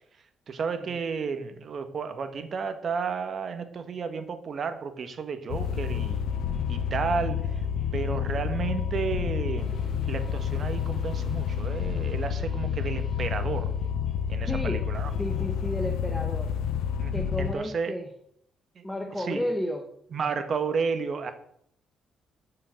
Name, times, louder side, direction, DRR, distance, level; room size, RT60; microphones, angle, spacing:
voice 1, 0.5-6.2 6.7-7.6 7.9-9.8 10.1-13.7 14.3-15.1 17.0-17.9 18.7-18.9 19.2-19.4 20.1-21.3, right 5 dB, 50° right, 9 dB, 1.5 m, -32 dB
sound 1, 5.5-17.5, left 8 dB, 85° left, 0.7 m, -29 dB
sound 2, 5.6-15.8, right 2 dB, 10° right, 2.2 m, -50 dB
voice 2, 14.5-14.8 15.2-16.5 17.1-18.1 18.8-19.9, equal, 10° left, 4 dB, 1.2 m, -32 dB
8.4 x 5.7 x 8.0 m, 0.69 s
cardioid pair, 90°, 0 cm